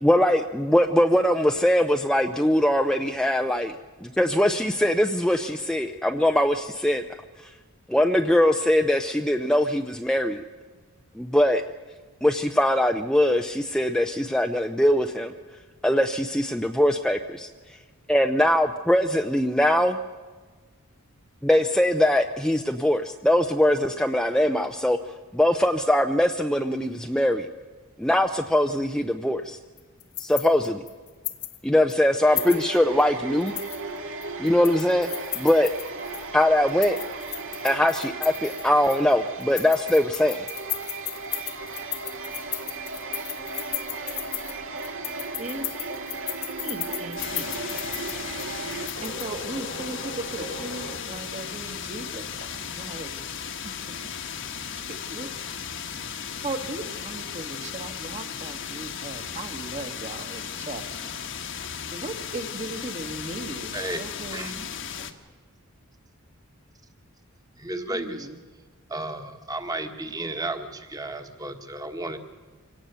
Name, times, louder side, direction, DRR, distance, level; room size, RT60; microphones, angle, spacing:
voice 1, 0.0-3.8 4.0-7.0 7.9-10.4 11.2-11.6 12.2-15.3 15.8-17.5 18.1-20.0 21.4-25.0 25.3-27.5 28.0-29.6 30.2-30.8 31.6-33.5 34.4-35.7 36.3-37.0 37.6-40.5, left 1 dB, 5° left, 5 dB, 0.6 m, -22 dB
sound 1, 29.8-31.6 31.9-32.0 32.4-33.0 33.4-36.3 36.7-39.1 39.4-49.3, left 16 dB, 75° left, 1.4 m, -35 dB
sound 2, 32.2-51.0, right 3 dB, 65° right, 2.1 m, -36 dB
voice 2, 45.4-45.7 46.6-47.6 49.0-53.1 53.9-54.0 55.1-55.3 56.4-61.2 61.9-64.7 65.0-65.1 67.9-68.4, right 2 dB, 35° right, 6 dB, 1.6 m, -37 dB
sound 3, 47.2-65.1, left 7 dB, 60° left, 1.4 m, -36 dB
voice 3, 67.6-68.3 68.9-72.2, right 2 dB, 15° right, 7 dB, 1.5 m, -33 dB
25.5 x 17.5 x 6.8 m, 1.4 s
head